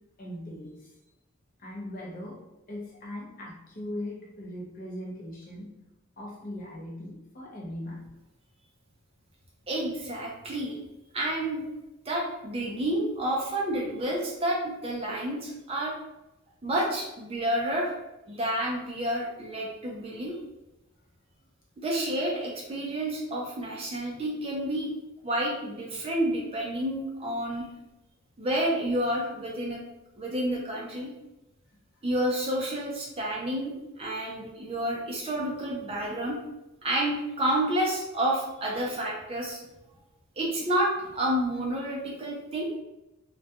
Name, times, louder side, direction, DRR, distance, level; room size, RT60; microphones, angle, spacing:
voice 1, 0.2-1.0 1.6-2.4 2.7-5.7 6.2-8.1 31.7-31.8, left 1 dB, 40° left, -3 dB, 0.5 m, -39 dB
voice 2, 9.7-10.8 11.1-11.7 12.1-15.9 16.6-17.9 18.3-20.4 21.8-24.9 25.2-27.7 28.4-29.8 30.2-31.1 32.0-36.4 36.8-39.6 40.4-42.7, right 1 dB, 25° right, -2 dB, 0.4 m, -29 dB
2.2 x 2.2 x 2.7 m, 0.94 s
head